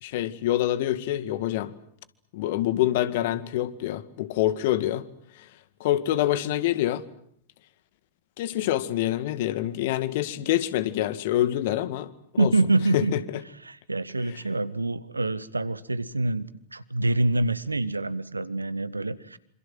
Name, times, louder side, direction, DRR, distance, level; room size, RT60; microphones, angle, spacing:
voice 1, 0.0-1.7 2.3-5.1 5.4-5.5 5.8-7.1 8.4-12.1 12.4-12.5 12.9-13.2 14.3-14.4, left 13 dB, 50° left, 2.0 m, -26 dB
voice 2, 12.4-13.1 13.7-19.4, right 2 dB, 80° right, 1.5 m, -26 dB
27.0 x 26.5 x 7.7 m
figure-of-eight pair, 90°, 0 cm